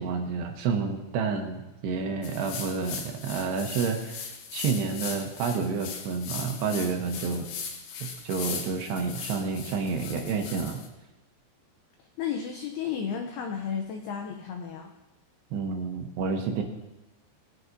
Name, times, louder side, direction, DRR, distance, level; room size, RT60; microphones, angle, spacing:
voice 1, 0.0-7.5 8.0-10.8 15.5-16.6, right 5 dB, 75° right, 3 dB, 2.8 m, -29 dB
sound 1, 2.2-10.9, left 6 dB, 70° left, 2.5 m, -39 dB
voice 2, 12.2-14.9, left 7 dB, 90° left, 4 dB, 2.2 m, -33 dB
18.0 x 9.3 x 2.7 m, 1.0 s
omnidirectional pair, 5.4 m